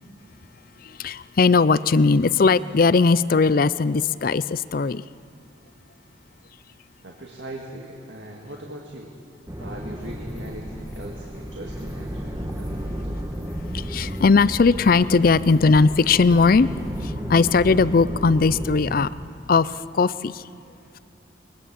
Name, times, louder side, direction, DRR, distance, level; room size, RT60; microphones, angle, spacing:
voice 1, 1.0-5.0 13.7-16.7 17.0-19.1 19.5-20.4, left 4 dB, 50° left, 18 dB, 0.4 m, -19 dB
voice 2, 7.0-9.1 9.6-13.0, right 1 dB, 70° right, 0 dB, 2.0 m, -40 dB
sound 1, 9.5-19.1, equal, 15° right, 1.3 m, -33 dB
sound 2, 10.0-17.0, equal, 20° left, 2.4 m, -43 dB
22.5 x 19.5 x 7.5 m, 2.4 s
head